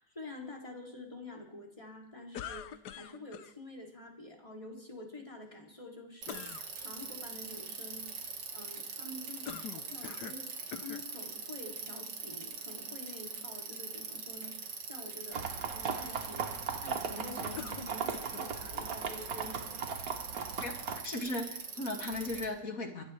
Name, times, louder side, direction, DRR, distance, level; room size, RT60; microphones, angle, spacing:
voice 1, 0.0-10.5 10.7-16.5 16.8-19.8, left 2 dB, 20° left, 0 dB, 3.1 m, -48 dB
sound 1, 2.3-3.5 6.3-6.7 9.5-10.4 10.7-11.1 11.9-12.0 17.6-18.5, left 9 dB, 70° left, 1.3 m, -44 dB
Bicycle, 6.2-22.5, right 5 dB, 80° right, 2.4 m, -43 dB
sound 2, 15.3-21.0, right 6 dB, 55° right, 1.5 m, -38 dB
voice 2, 20.6-23.0, left 2 dB, 50° left, 2 dB, 2.8 m, -37 dB
24.5 x 16.5 x 3.4 m, 0.73 s
omnidirectional pair, 1.9 m